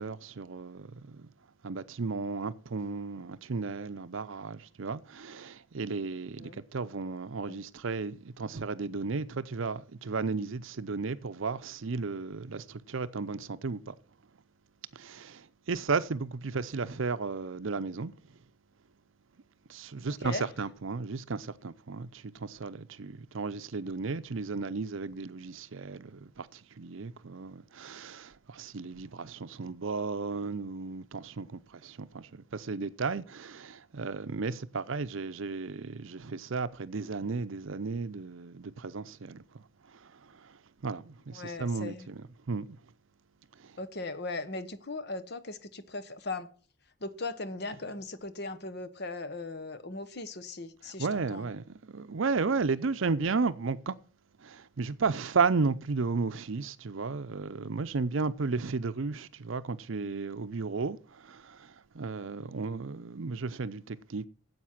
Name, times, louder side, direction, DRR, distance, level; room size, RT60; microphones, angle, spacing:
voice 1, 0.0-1.3 1.6-14.0 14.9-18.1 19.7-39.6 39.9-40.6 40.8-42.7 43.6-43.8 51.0-53.9 54.4-64.3, right 4 dB, 65° right, 0.6 m, -34 dB
voice 2, 41.3-42.1 43.8-46.5 47.0-51.5, left 3 dB, 50° left, 1.0 m, -38 dB
9.6 x 8.0 x 5.8 m
head